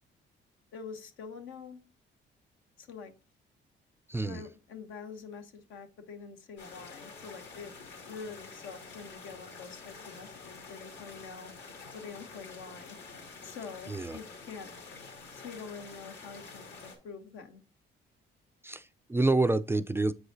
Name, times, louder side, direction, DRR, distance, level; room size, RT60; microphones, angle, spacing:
voice 1, 0.7-1.8 2.8-3.1 4.2-7.7 8.1-11.5 11.9-13.0 13.4-14.7 15.3-17.6, left 5 dB, 80° left, 1.1 m, -45 dB
voice 2, 4.1-4.4 13.9-14.2 18.6-20.1, right 2 dB, 10° right, 0.3 m, -28 dB
sound 1, 6.6-17.0, left 4 dB, 65° left, 2.1 m, -48 dB
7.7 x 4.9 x 2.6 m
cardioid pair, 90°, 20 cm